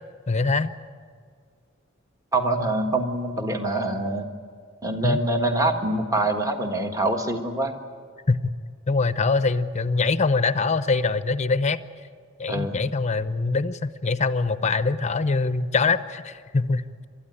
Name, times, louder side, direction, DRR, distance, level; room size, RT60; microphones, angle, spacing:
voice 1, 0.3-0.7 5.0-5.2 8.3-8.5 8.9-11.8 12.4-17.1, left 3 dB, 35° left, 13 dB, 0.7 m, -23 dB
voice 2, 2.3-4.3 4.8-7.7 12.5-12.9, right 2 dB, 15° right, 5 dB, 1.5 m, -25 dB
29.0 x 13.5 x 9.8 m, 2.1 s
head